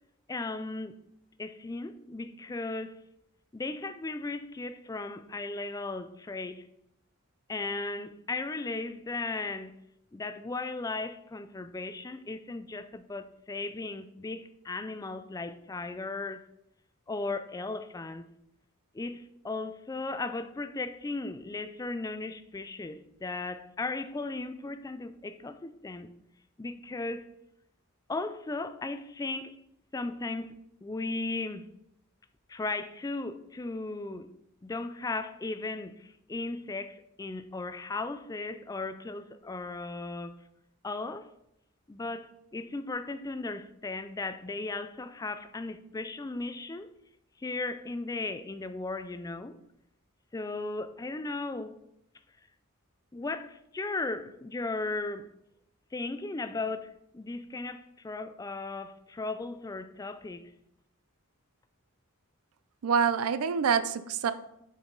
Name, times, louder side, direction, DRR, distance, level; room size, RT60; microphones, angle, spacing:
voice 1, 0.3-0.9 1.4-3.0 3.5-6.7 7.5-9.8 10.1-16.4 17.1-18.3 18.9-26.1 26.6-27.3 28.1-29.6 29.9-30.6 30.8-31.7 32.5-34.3 34.6-40.4 40.8-41.3 41.9-46.9 47.4-49.6 50.3-51.8 53.1-55.3 55.9-60.5, left 3 dB, 15° left, 0.3 m, -36 dB
voice 2, 62.8-64.3, right 6 dB, 75° right, 0.4 m, -26 dB
6.9 x 5.5 x 3.9 m
head